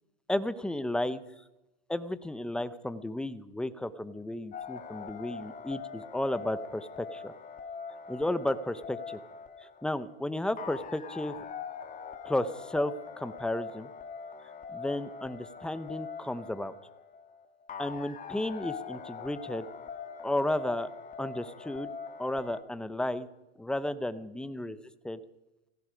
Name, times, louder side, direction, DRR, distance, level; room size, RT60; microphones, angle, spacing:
voice 1, 0.3-1.2 1.9-7.3 8.1-9.2 9.8-11.3 12.2-13.9 14.7-16.7 17.8-19.6 20.2-20.9 21.2-21.9 22.2-23.3 23.6-24.8 25.0-25.2, left 1 dB, 5° left, 14 dB, 0.7 m, -33 dB
sound 1, 4.5-22.6, left 6 dB, 25° left, 1.7 m, -43 dB
18.0 x 16.0 x 5.0 m, 0.99 s
hypercardioid pair, 120°, 34 cm